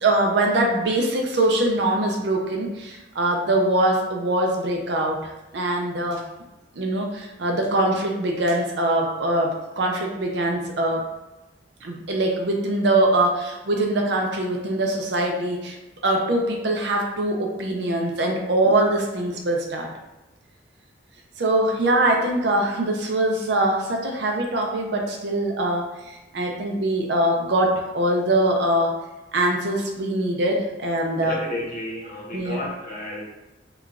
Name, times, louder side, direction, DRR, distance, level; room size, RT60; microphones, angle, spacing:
voice 1, 0.0-6.2 6.8-11.1 11.8-15.8 16.0-19.9 21.4-28.9 29.3-31.4 32.3-32.6, right 1 dB, 65° right, 1 dB, 0.5 m, -23 dB
voice 2, 31.1-33.3, left 1 dB, 45° left, -4 dB, 0.9 m, -32 dB
4.7 x 2.3 x 2.4 m, 1.1 s
head